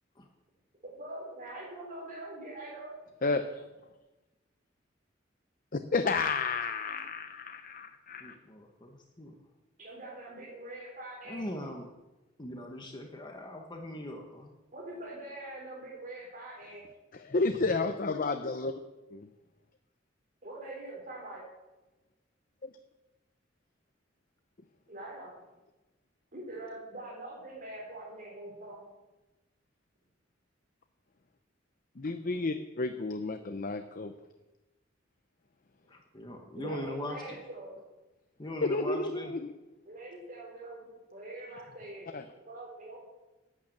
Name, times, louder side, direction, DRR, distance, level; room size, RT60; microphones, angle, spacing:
voice 1, 1.0-3.0 9.8-11.4 14.7-16.8 20.4-21.4 24.9-25.3 26.3-28.8 36.6-37.8 39.9-43.0, right 1 dB, 45° right, -7 dB, 4.7 m, -43 dB
voice 2, 5.7-8.3 17.1-18.7 19.1-19.3 22.6-22.7 32.0-34.1 38.6-39.5 42.1-42.2, left 3 dB, 45° left, 7 dB, 0.7 m, -31 dB
voice 3, 8.2-9.3 11.2-11.9 12.4-14.5 35.9-37.4 38.4-39.3, left 1 dB, 25° left, 2 dB, 1.3 m, -40 dB
11.5 x 9.1 x 8.7 m, 1.1 s
head